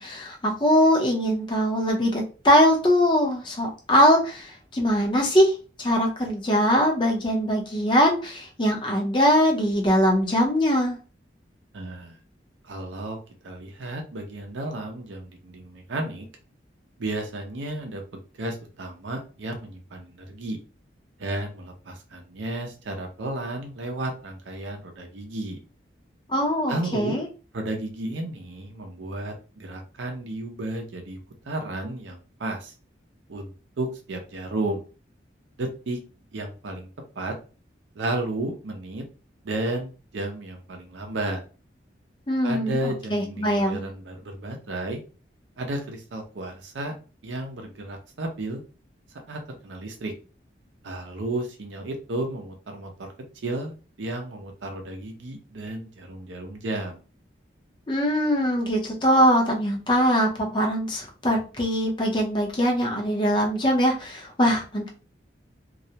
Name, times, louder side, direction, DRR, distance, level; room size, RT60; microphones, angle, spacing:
voice 1, 0.0-5.5 5.8-11.0 26.3-27.3 42.3-43.8 57.9-64.9, equal, 25° left, 0 dB, 0.6 m, -22 dB
voice 2, 11.7-12.2 12.6-13.2 13.4-16.3 17.0-18.0 18.4-20.6 21.2-25.6 26.7-27.1 27.5-31.2 31.4-32.7 33.3-34.8 35.6-36.0 36.3-36.9 37.2-37.3 37.9-39.0 39.4-41.4 42.4-45.0 45.6-46.9 47.2-48.6 49.3-50.1 50.8-57.0, right 2 dB, 85° right, 3 dB, 0.5 m, -33 dB
2.3 x 2.0 x 2.7 m, 0.34 s
head